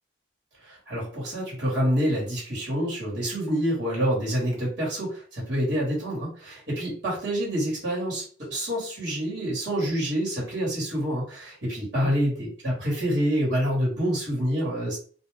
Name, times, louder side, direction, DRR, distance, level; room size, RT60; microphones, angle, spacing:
voice 1, 0.6-15.0, equal, 75° right, -5 dB, 1.4 m, -27 dB
2.5 x 2.2 x 3.3 m, 0.42 s
head